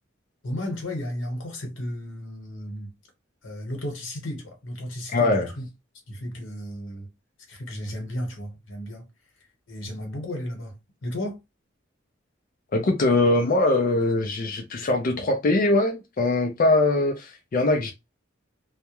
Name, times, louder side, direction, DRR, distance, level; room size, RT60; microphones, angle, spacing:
voice 1, 0.4-2.9 3.4-5.7 6.1-7.1 7.5-9.0 9.7-10.7 11.0-11.4, left 1 dB, 90° left, 1.0 m, -34 dB
voice 2, 5.1-5.5 12.7-17.9, left 2 dB, 45° left, 0.4 m, -22 dB
2.2 x 2.0 x 2.8 m
head